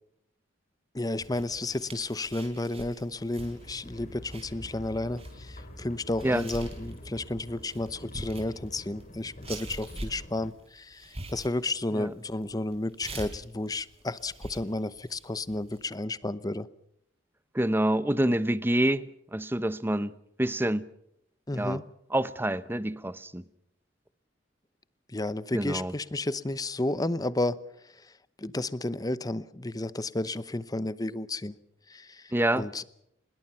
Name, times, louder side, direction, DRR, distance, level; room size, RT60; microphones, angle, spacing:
voice 1, 0.9-16.7 21.5-21.8 25.1-27.6 28.4-31.5 31.9-32.8, left 2 dB, 20° left, 0.8 m, -32 dB
sound 1, 1.2-15.8, right 2 dB, 35° right, 4.7 m, -44 dB
sound 2, 3.4-10.5, left 1 dB, 40° left, 4.0 m, -46 dB
voice 2, 17.5-19.0 19.3-20.1 20.4-20.8 21.5-21.8 22.1-23.4 25.5-25.9 32.3-32.6, right 1 dB, 10° right, 0.8 m, -27 dB
25.5 x 21.5 x 5.7 m
head